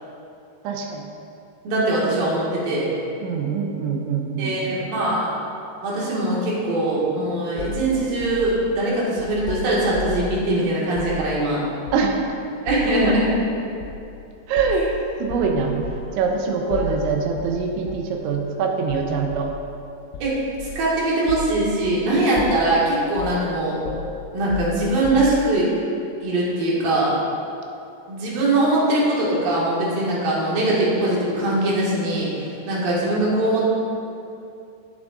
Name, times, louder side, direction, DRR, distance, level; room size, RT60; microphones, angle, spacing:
voice 1, 0.6-1.0 3.2-4.9 11.9-12.2 14.5-14.9 15.2-15.8 16.2-19.5, right 5 dB, 85° right, 2 dB, 3.3 m, -24 dB
voice 2, 1.6-2.9 4.4-5.3 5.8-11.6 12.6-13.3 14.7-14.8 16.8-16.9 20.2-23.8 24.3-25.7 26.2-27.1 28.1-33.6, right 1 dB, 55° right, -6 dB, 3.4 m, -22 dB
sound 1, 7.6-10.3 10.9-11.2 11.9-12.3 12.7-13.3 13.8-14.0 14.6-14.9 15.3-16.1 16.7-17.1 17.4-17.6 17.9-18.1 18.9-19.5 20.1-20.9 21.3-21.5 21.8-22.0 22.4-22.8 23.2-23.5 23.9-25.5, left 3 dB, 85° left, 2.0 m, -33 dB
17.0 x 7.2 x 2.6 m, 2.7 s
omnidirectional pair, 5.2 m